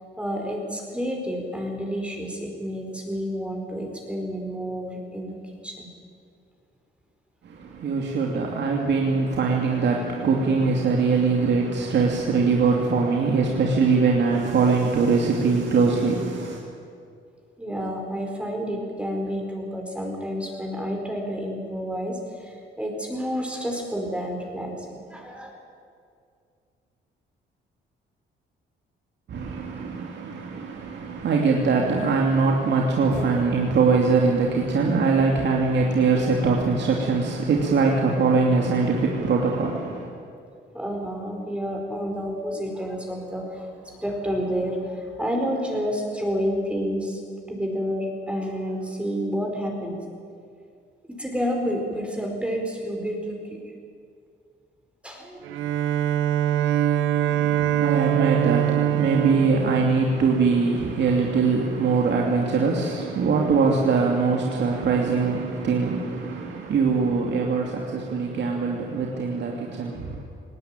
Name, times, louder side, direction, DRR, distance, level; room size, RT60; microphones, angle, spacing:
voice 1, 0.2-5.4 5.6-5.9 17.6-25.5 40.7-47.2 47.5-50.0 51.1-53.7 55.0-55.6, equal, 5° right, 1 dB, 4.9 m, -29 dB
voice 2, 7.4-16.6 29.3-40.1 57.2-70.2, right 4 dB, 60° right, 0 dB, 2.7 m, -22 dB
Bowed string instrument, 55.4-60.7, right 11 dB, 85° right, 0.9 m, -23 dB
19.5 x 18.5 x 9.1 m, 2.3 s
cardioid pair, 90°, 20 cm